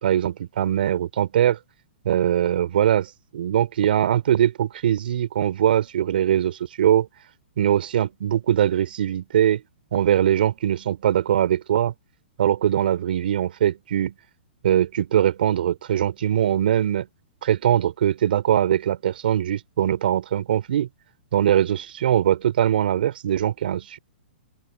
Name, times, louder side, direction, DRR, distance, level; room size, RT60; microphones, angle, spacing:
voice 1, 0.0-1.6 2.0-7.1 7.6-9.6 9.9-11.9 12.4-14.1 14.6-17.1 17.4-20.9 21.3-24.0, right 10 dB, 65° right, 3.1 m, -21 dB
open air
hypercardioid pair, 130°, 6 cm